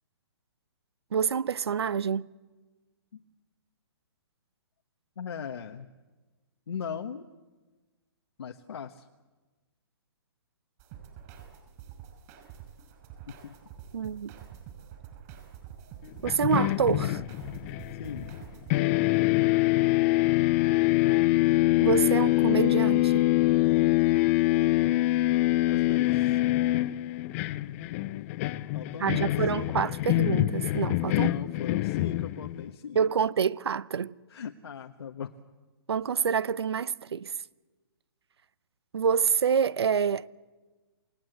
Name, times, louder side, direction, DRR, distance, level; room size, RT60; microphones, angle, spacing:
voice 1, 1.1-2.3 13.9-14.4 16.2-17.2 21.8-23.3 29.0-31.3 32.9-34.2 35.9-37.3 38.9-40.3, right 7 dB, 80° right, 0.8 m, -27 dB
voice 2, 5.2-5.9 6.7-7.2 8.4-9.1 13.3-13.5 18.0-18.3 25.7-26.4 28.7-29.4 31.1-33.0 34.3-35.3, left 7 dB, 75° left, 1.3 m, -39 dB
sound 1, 10.8-18.8, right 9 dB, 40° right, 5.6 m, -47 dB
sound 2, 16.2-18.4 18.7-32.7, left 17 dB, 35° left, 0.7 m, -25 dB
28.0 x 18.0 x 8.0 m
hypercardioid pair, 140°, 13 cm